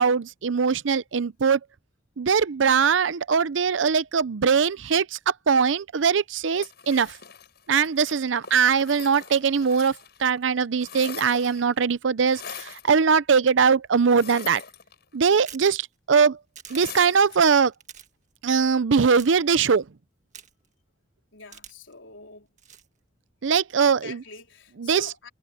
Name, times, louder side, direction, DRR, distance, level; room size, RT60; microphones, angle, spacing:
voice 1, 0.0-1.6 2.2-7.1 7.7-14.6 15.1-16.4 16.7-17.7 18.4-19.8 23.4-24.2 24.8-25.1, right 6 dB, 80° right, 0.6 m, -21 dB
sound 1, 6.5-10.3 10.6-11.7 12.3-12.9 14.1-15.3 16.7-17.5, left 7 dB, 60° left, 7.3 m, -42 dB
sound 2, 15.3-15.7 16.6-16.8 17.7-18.1 19.1-19.3 20.3-20.7 21.5-21.9 22.6-22.9, right 9 dB, 40° right, 1.6 m, -44 dB
voice 2, 21.3-22.5 23.8-25.3, left 3 dB, 85° left, 3.9 m, -44 dB
head